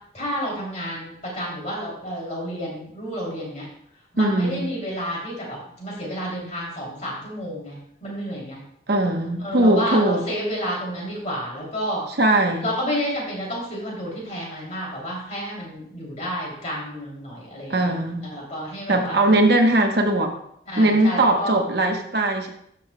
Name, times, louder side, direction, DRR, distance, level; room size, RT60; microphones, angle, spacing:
voice 1, 0.1-3.7 4.1-7.8 8.0-8.6 9.4-12.0 12.6-17.9 18.2-19.4 20.7-21.6, equal, 40° left, -3 dB, 2.9 m, -30 dB
voice 2, 4.2-4.7 8.9-10.2 12.2-12.7 17.7-18.2 18.9-20.3 20.8-22.5, right 1 dB, 65° right, 4 dB, 1.0 m, -20 dB
12.0 x 6.6 x 2.2 m, 0.70 s
head